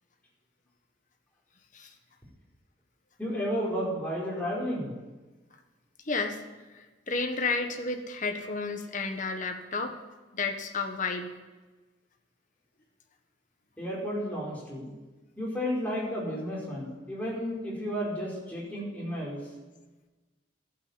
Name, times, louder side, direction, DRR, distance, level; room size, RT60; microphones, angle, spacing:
voice 1, 3.2-4.9 13.8-14.9 15.4-19.4, equal, 10° left, -5 dB, 4.8 m, -32 dB
voice 2, 6.0-6.4 6.7-9.9 10.3-11.3, left 3 dB, 45° left, 5 dB, 1.4 m, -31 dB
12.0 x 8.5 x 9.7 m, 1.2 s
head